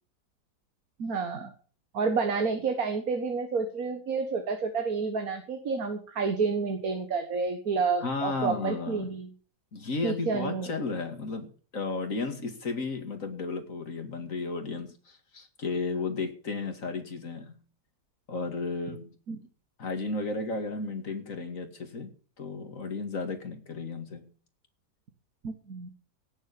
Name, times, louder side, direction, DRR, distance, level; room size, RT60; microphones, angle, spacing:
voice 1, 1.0-1.5 1.9-9.3 10.0-10.8 19.3-19.4 25.4-25.9, right 4 dB, 60° right, 6 dB, 1.9 m, -29 dB
voice 2, 8.0-9.1 9.7-17.6 18.3-19.1 19.8-22.1 22.4-24.3, left 3 dB, 50° left, 6 dB, 2.6 m, -34 dB
16.5 x 7.3 x 6.9 m, 0.41 s
omnidirectional pair, 1.8 m